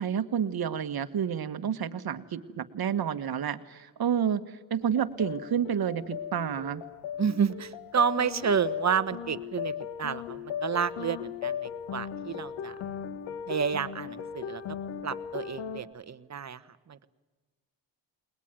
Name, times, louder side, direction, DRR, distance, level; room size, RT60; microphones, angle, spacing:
voice 1, 0.0-4.4 4.7-6.8, right 8 dB, 55° right, 11 dB, 1.4 m, -29 dB
sound 1, 4.8-15.8, left 8 dB, 90° left, 1.6 m, -37 dB
voice 2, 7.2-12.7 13.5-14.8 15.0-17.1, right 7 dB, 35° right, 12 dB, 1.2 m, -30 dB
21.0 x 20.0 x 9.2 m, 1.3 s
cardioid pair, 70°, 45 cm